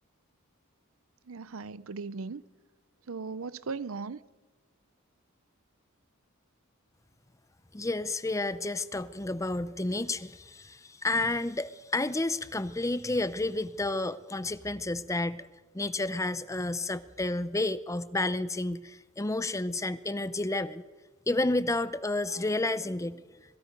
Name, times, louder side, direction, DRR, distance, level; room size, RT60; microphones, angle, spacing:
voice 1, 1.3-2.4 3.1-4.2, right 4 dB, 70° right, 0.6 m, -37 dB
voice 2, 7.7-15.5 15.7-20.8 21.3-23.2, left 2 dB, 15° left, 0.6 m, -31 dB
26.5 x 21.5 x 5.3 m
head